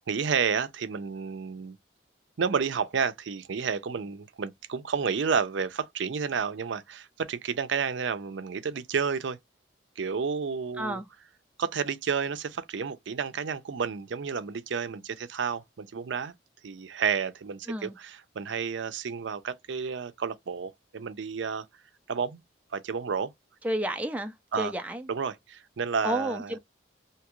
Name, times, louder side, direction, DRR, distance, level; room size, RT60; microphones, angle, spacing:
voice 1, 0.1-1.8 2.4-9.4 10.0-11.0 11.6-16.3 16.6-21.7 22.1-22.4 22.7-23.3 24.5-24.7 25.1-26.6, right 6 dB, 75° right, 0.5 m, -31 dB
voice 2, 10.8-11.1 17.7-18.0 23.6-25.0 26.0-26.6, right 1 dB, 10° right, 0.3 m, -31 dB
2.8 x 2.2 x 2.9 m
head